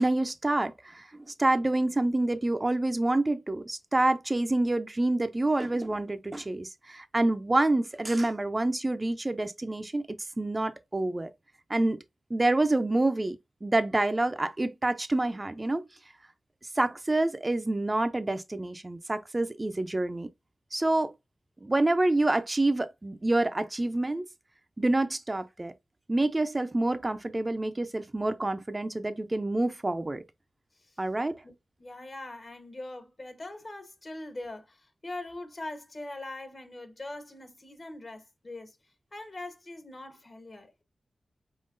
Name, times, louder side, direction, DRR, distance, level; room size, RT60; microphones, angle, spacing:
voice 1, 0.0-11.3 11.7-12.0 12.3-15.8 16.7-20.3 20.7-21.1 21.6-24.3 24.8-25.7 26.1-30.2 31.0-31.4, right 2 dB, 30° right, 0.5 m, -27 dB
voice 2, 31.8-38.8 39.1-40.8, left 2 dB, 50° left, 1.4 m, -42 dB
4.6 x 3.7 x 2.5 m
cardioid pair, 45°, 0 cm